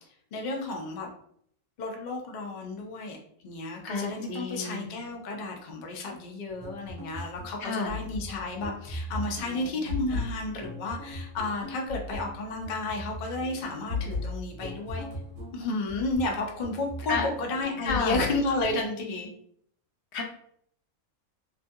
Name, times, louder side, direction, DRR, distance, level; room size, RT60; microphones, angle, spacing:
voice 1, 0.3-1.1 1.8-3.2 3.4-15.1 15.5-19.3, left 2 dB, 90° left, 1 dB, 0.4 m, -32 dB
voice 2, 3.9-4.9 7.6-7.9 17.1-17.3 17.8-18.2 20.1-20.2, left 4 dB, 65° left, 2 dB, 0.7 m, -30 dB
sound 1, 6.5-18.8, left 2 dB, 60° right, 1.0 m, -38 dB
2.9 x 2.4 x 2.6 m, 0.66 s
omnidirectional pair, 1.5 m